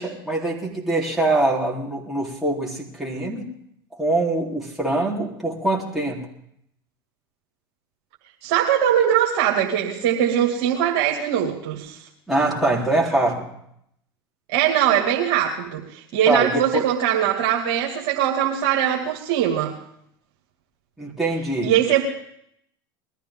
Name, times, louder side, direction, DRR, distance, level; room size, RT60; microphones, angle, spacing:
voice 1, 0.0-3.5 4.0-6.3 12.3-13.5 16.3-16.9 21.0-21.7, right 2 dB, ahead, -4 dB, 4.0 m, -23 dB
voice 2, 8.4-12.0 14.5-19.7 21.6-22.0, right 10 dB, 60° right, -1 dB, 2.4 m, -21 dB
21.0 x 13.5 x 3.8 m, 0.71 s
hypercardioid pair, 85°, 12 cm